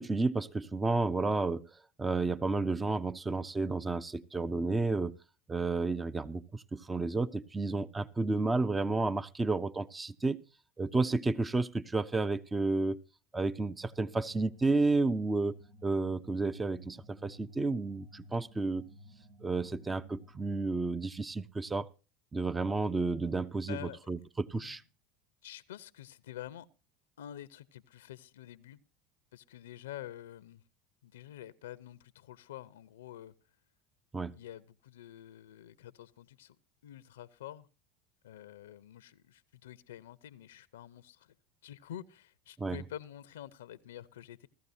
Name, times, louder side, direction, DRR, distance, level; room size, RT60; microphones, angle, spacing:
voice 1, 0.0-1.7 2.0-5.1 5.5-10.4 10.8-13.0 13.3-15.6 15.8-18.9 19.4-21.9 22.3-23.8 24.1-24.8 34.1-34.4 42.6-42.8, right 3 dB, 15° right, 0.5 m, -31 dB
sound 1, 13.6-21.0, left 1 dB, 80° right, 1.7 m, -56 dB
voice 2, 23.7-24.0 24.6-24.8 25.4-26.7 27.2-28.8 29.3-30.6 31.0-33.3 34.3-36.6 36.8-37.7 38.2-41.4 41.6-44.5, left 12 dB, 85° left, 0.6 m, -48 dB
16.5 x 13.5 x 2.7 m
hypercardioid pair, 100°, 0 cm